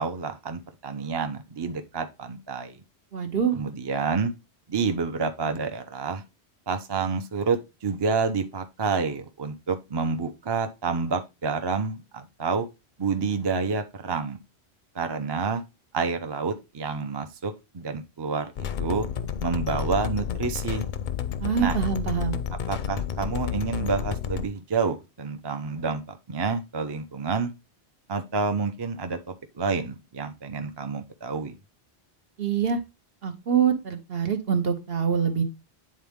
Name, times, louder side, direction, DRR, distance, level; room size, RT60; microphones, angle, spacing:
voice 1, 0.0-2.8 3.5-4.3 4.7-6.2 6.7-12.7 13.0-14.4 14.9-15.6 15.9-19.1 19.4-20.9 21.6-21.8 22.7-27.5 28.1-31.5, right 4 dB, 30° right, 0.6 m, -29 dB
voice 2, 3.1-3.6 21.4-22.4 32.4-32.8 33.2-35.4, right 7 dB, 65° right, 1.2 m, -25 dB
sound 1, 18.6-24.4, left 8 dB, 60° left, 0.6 m, -30 dB
8.9 x 3.9 x 3.5 m
omnidirectional pair, 1.1 m